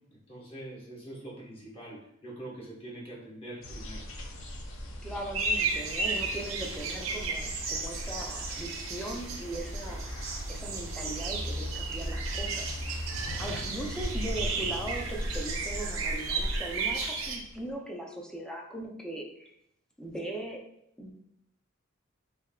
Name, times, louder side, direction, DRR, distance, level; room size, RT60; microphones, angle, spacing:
voice 1, 0.1-4.0, right 1 dB, 30° left, -6 dB, 1.2 m, -44 dB
sound 1, 3.6-17.7, equal, 70° left, 0.6 m, -38 dB
voice 2, 5.0-10.2 10.5-12.7 13.4-19.5 20.0-20.6 21.0-21.1, right 1 dB, 5° left, 0 dB, 0.5 m, -39 dB
sound 2, 5.3-17.4, right 4 dB, 75° right, 0.6 m, -34 dB
3.6 x 3.4 x 2.3 m, 0.75 s
head